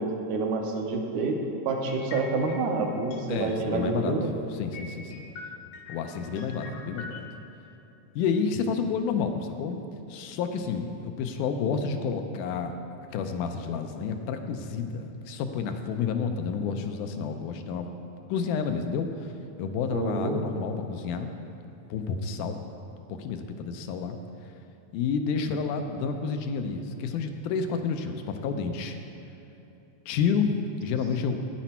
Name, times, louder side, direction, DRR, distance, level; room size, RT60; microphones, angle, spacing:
voice 1, 0.0-1.4 1.7-4.3 19.9-20.4, right 3 dB, 75° right, 2 dB, 2.2 m, -28 dB
sound 1, 1.9-2.8 3.1-3.8 4.1-4.2 4.7-7.2, left 5 dB, 70° left, 2.1 m, -43 dB
voice 2, 3.3-5.3 5.9-7.2 8.2-9.8 10.1-12.7 13.1-17.9 18.3-19.3 19.6-21.3 21.9-22.6 23.1-24.2 24.9-29.0 30.1-31.4, left 5 dB, 85° left, 6 dB, 2.2 m, -30 dB
10.0 x 9.2 x 4.4 m, 2.9 s
omnidirectional pair, 3.5 m